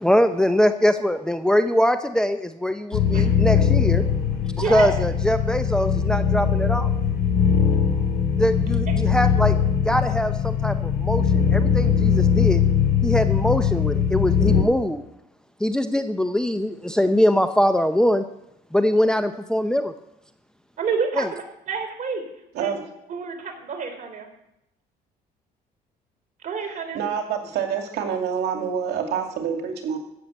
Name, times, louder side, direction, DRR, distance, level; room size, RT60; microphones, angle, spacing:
voice 1, 0.0-4.0 4.6-6.9 8.3-12.6 13.0-15.0 15.6-18.2 18.7-19.9 21.2-21.3, equal, 5° left, 8 dB, 0.7 m, -22 dB
sound 1, 2.9-14.6, left 7 dB, 75° left, 2.8 m, -21 dB
voice 2, 4.6-4.9 20.8-22.2 22.5-22.7 23.1-24.3 26.4-27.0, right 5 dB, 50° right, 5 dB, 3.5 m, -28 dB
voice 3, 26.9-30.0, right 7 dB, 75° right, 4 dB, 2.3 m, -27 dB
14.5 x 6.9 x 8.1 m, 0.83 s
cardioid pair, 110°, 17 cm